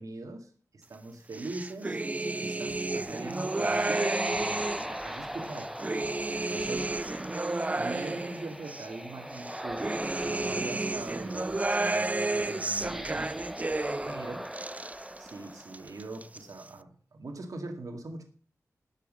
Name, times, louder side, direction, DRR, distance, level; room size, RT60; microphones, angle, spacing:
voice 1, 0.0-2.0 2.4-4.4 4.9-6.9 7.7-13.3 14.0-14.4 15.2-18.2, right 2 dB, 75° right, 2.1 m, -42 dB
sound 1, 1.3-5.0 5.4-8.9 9.3-14.2 14.4-15.3 15.6-16.4, right 2 dB, 25° right, 0.4 m, -32 dB
sound 2, 2.5-16.1, equal, 5° right, 1.0 m, -39 dB
11.5 x 6.6 x 6.4 m
wide cardioid pair, 65°, 6 cm